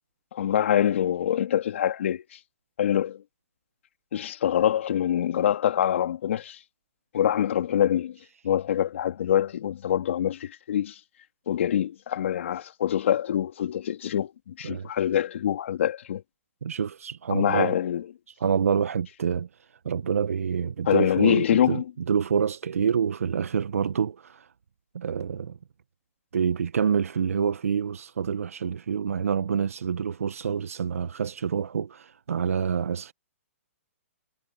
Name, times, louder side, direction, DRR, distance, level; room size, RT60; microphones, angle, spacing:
voice 1, 0.3-2.4 2.8-3.2 4.1-6.6 7.1-8.2 8.4-11.0 11.5-16.2 17.3-18.1 20.9-21.8, left 10 dB, 60° left, 2.9 m, -25 dB
voice 2, 16.6-17.8 18.4-19.5 19.8-21.8 22.1-24.5 24.9-25.6 26.3-33.1, right 7 dB, 80° right, 1.0 m, -27 dB
hypercardioid pair, 140°, 8 cm